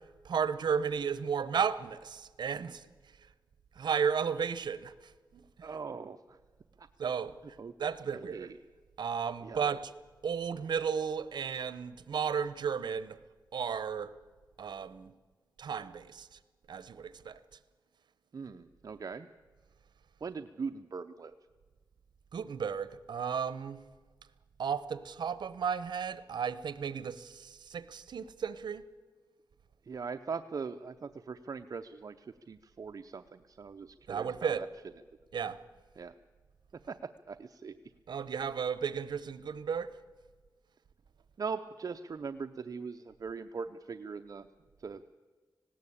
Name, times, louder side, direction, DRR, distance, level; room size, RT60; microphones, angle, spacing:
voice 1, 0.2-2.9 3.8-4.9 5.3-5.4 7.0-7.3 7.8-8.5 9.0-9.8 10.2-13.2 13.5-14.1 14.6-15.1 15.6-16.3 16.7-17.4 22.3-23.8 24.6-28.8 34.1-34.6 35.3-35.6 38.1-39.9, right 7 dB, 75° right, 1.0 m, -33 dB
voice 2, 5.6-6.4 6.8-6.9 7.6-7.7 8.1-8.6 9.4-9.8 18.3-19.3 20.2-21.4 29.8-34.7 36.0-36.1 36.9-37.0 37.3-37.7 41.4-44.5 44.8-45.0, right 5 dB, 50° right, 0.7 m, -41 dB
19.0 x 17.0 x 8.6 m
wide cardioid pair, 100°, 8 cm